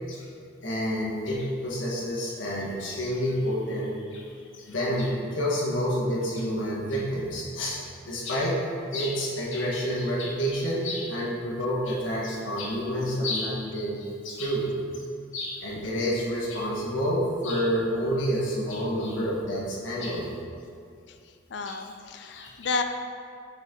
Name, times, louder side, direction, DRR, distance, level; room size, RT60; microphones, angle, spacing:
voice 1, 0.6-8.6 8.9-14.7 14.9-15.0 15.3-20.3 21.6-21.8 22.3-22.7, equal, 80° left, -5 dB, 1.3 m, -29 dB
voice 2, 21.5-22.8, left 4 dB, 65° left, 6 dB, 0.4 m, -31 dB
6.0 x 4.3 x 3.7 m, 2.4 s
head